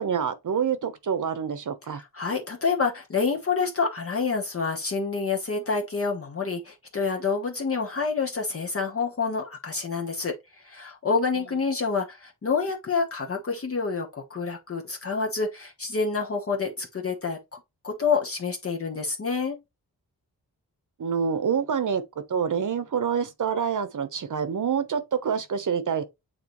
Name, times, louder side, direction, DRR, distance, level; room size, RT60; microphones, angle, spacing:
voice 1, 0.0-2.0 21.0-22.0 22.3-26.0, right 7 dB, 55° right, 1.1 m, -27 dB
voice 2, 1.9-17.6 17.8-19.6, left 4 dB, 40° left, 1.2 m, -28 dB
8.6 x 4.0 x 3.1 m
wide cardioid pair, 175°, 36 cm